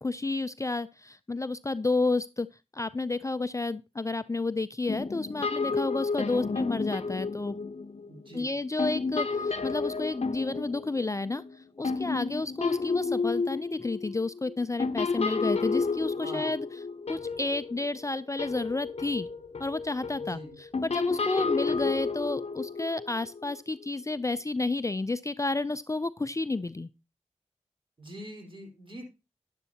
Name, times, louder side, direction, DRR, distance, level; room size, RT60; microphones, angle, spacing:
voice 1, 0.0-2.5 2.7-7.6 8.3-16.7 17.1-19.3 19.6-26.9, left 3 dB, 25° left, 14 dB, 0.4 m, -31 dB
sound 1, 4.9-8.4 8.8-18.1 18.4-23.5, left 4 dB, 60° left, 0.7 m, -31 dB
voice 2, 8.1-8.5 16.2-16.6 20.3-20.6 28.0-29.0, equal, 45° right, 1 dB, 4.7 m, -43 dB
10.5 x 10.5 x 2.8 m, 0.28 s
cardioid pair, 45°, 12 cm